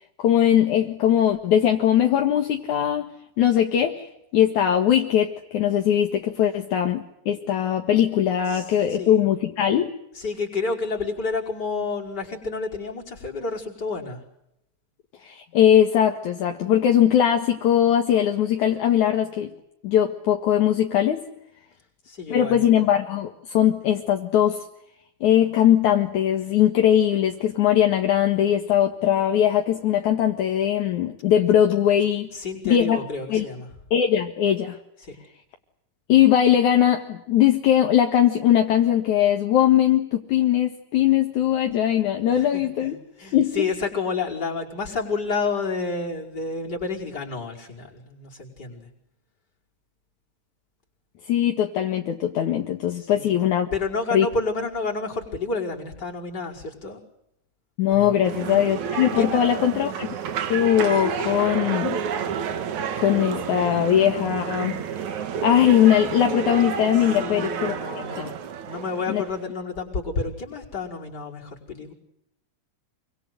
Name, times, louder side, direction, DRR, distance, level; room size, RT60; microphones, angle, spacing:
voice 1, 0.2-3.1 3.4-4.1 4.3-9.9 15.2-19.5 19.8-21.3 22.3-24.6 25.2-32.3 32.7-33.0 33.3-33.5 33.9-34.8 36.1-43.7 51.3-53.7 54.1-54.3 57.8-60.1 60.5-62.0 63.0-65.1 65.4-67.8 69.1-69.2, left 10 dB, 65° left, 4 dB, 3.0 m, -20 dB
voice 2, 8.5-9.2 10.1-14.2 22.1-22.6 32.3-33.7 35.0-35.2 42.3-48.9 53.0-53.4 53.7-57.0 57.9-58.3 59.2-60.0 67.2-71.9, left 4 dB, 30° left, -1 dB, 5.8 m, -30 dB
sound 1, 58.2-69.5, right 7 dB, 65° right, 3.0 m, -30 dB
27.0 x 25.0 x 7.8 m, 0.81 s
omnidirectional pair, 3.8 m